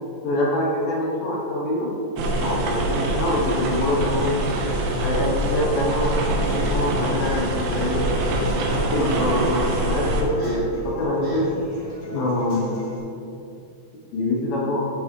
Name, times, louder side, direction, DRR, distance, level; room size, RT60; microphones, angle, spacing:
voice 1, 0.2-1.9 2.4-4.4 4.8-8.1 8.7-11.5 12.1-12.7 14.1-14.9, left 1 dB, 75° left, -4 dB, 2.2 m, -25 dB
sound 1, 2.2-10.2, right 1 dB, 75° right, 3.0 m, -24 dB
Human voice / Acoustic guitar, 5.0-13.0, left 1 dB, 45° left, 2.6 m, -41 dB
Crow, 6.6-8.6 8.8-9.2 9.6-10.0 10.4-10.7 11.2-11.5, right 1 dB, 45° right, 1.8 m, -46 dB
14.0 x 5.3 x 3.2 m, 2.7 s
omnidirectional pair, 5.4 m